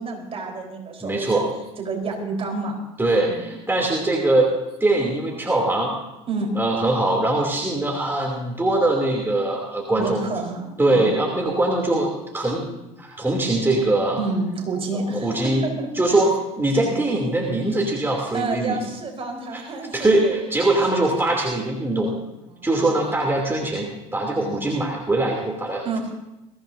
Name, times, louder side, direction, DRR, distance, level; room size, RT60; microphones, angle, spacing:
voice 1, 0.0-1.4 1.8-2.8 3.2-3.6 6.3-6.5 10.0-11.2 14.2-16.2 16.8-17.0 18.3-20.4 20.9-21.0 22.5-22.9 24.4-24.6 25.8-26.0, right 3 dB, 35° right, 1 dB, 4.4 m, -30 dB
voice 2, 1.0-1.5 3.0-4.5 4.8-5.9 6.6-10.3 10.8-12.7 13.0-14.2 14.9-15.6 15.9-18.8 19.5-19.6 19.9-22.1 22.6-26.0, right 2 dB, 15° right, -1 dB, 3.0 m, -22 dB
22.0 x 15.0 x 2.8 m, 0.94 s
hypercardioid pair, 65°, 17 cm